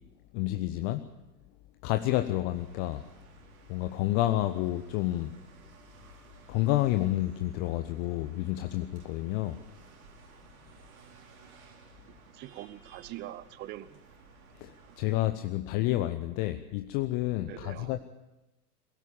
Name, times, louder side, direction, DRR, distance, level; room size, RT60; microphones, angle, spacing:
voice 1, 0.3-1.1 1.8-3.0 3.7-5.3 6.5-9.6 14.6-18.0, left 15 dB, 25° left, 9 dB, 0.8 m, -29 dB
sound 1, 2.5-15.1, right 4 dB, 60° right, 4.3 m, -56 dB
voice 2, 12.1-14.0 14.9-15.0 17.5-18.0, right 14 dB, 20° right, 17 dB, 0.8 m, -44 dB
22.0 x 16.5 x 8.9 m, 0.99 s
figure-of-eight pair, 100°, 48 cm